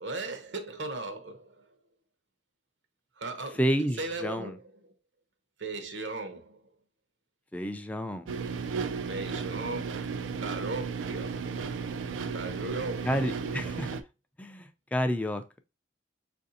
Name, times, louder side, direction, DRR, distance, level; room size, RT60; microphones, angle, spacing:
voice 1, 0.0-1.6 3.2-3.6 4.0-4.6 5.6-6.6 9.1-11.5 12.3-13.3, right 3 dB, 75° right, 0.8 m, -37 dB
voice 2, 3.6-4.6 7.5-8.3 13.0-14.0 14.4-15.4, equal, 10° left, 0.3 m, -30 dB
sound 1, 8.3-14.0, right 5 dB, 90° right, 0.4 m, -34 dB
4.8 x 2.6 x 2.6 m
head